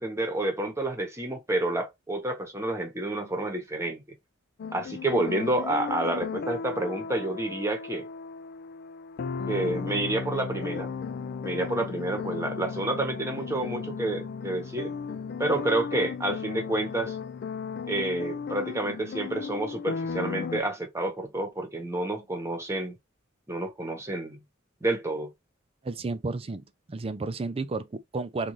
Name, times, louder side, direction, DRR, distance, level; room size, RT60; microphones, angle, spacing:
voice 1, 0.0-4.0 4.7-8.1 9.5-10.9 11.4-14.9 15.4-17.2 17.9-23.0 23.5-24.4 24.8-25.3, right 2 dB, 15° right, 1.0 m, -29 dB
sound 1, 4.6-20.6, left 5 dB, 55° left, 0.4 m, -35 dB
voice 2, 25.8-28.5, right 3 dB, 30° right, 0.4 m, -32 dB
3.8 x 2.5 x 3.0 m
head